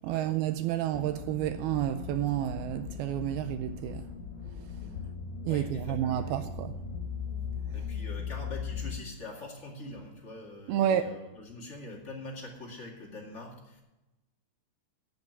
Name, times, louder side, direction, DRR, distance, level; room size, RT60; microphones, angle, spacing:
voice 1, 0.0-4.1 5.5-6.7 10.7-11.1, right 11 dB, 90° right, 2.2 m, -30 dB
sound 1, 0.9-9.0, left 6 dB, 75° left, 3.5 m, -38 dB
voice 2, 5.5-6.4 7.7-13.8, left 2 dB, 30° left, 1.2 m, -44 dB
10.5 x 8.0 x 7.3 m
omnidirectional pair, 5.1 m